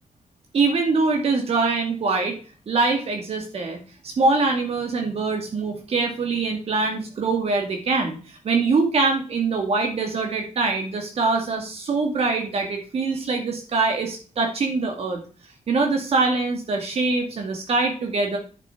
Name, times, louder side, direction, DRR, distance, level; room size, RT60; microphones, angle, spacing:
voice 1, 0.5-2.4 2.7-15.2 15.7-18.4, right 3 dB, 60° right, 2 dB, 2.5 m, -23 dB
11.0 x 6.4 x 4.6 m, 0.38 s
wide cardioid pair, 130°, 12 cm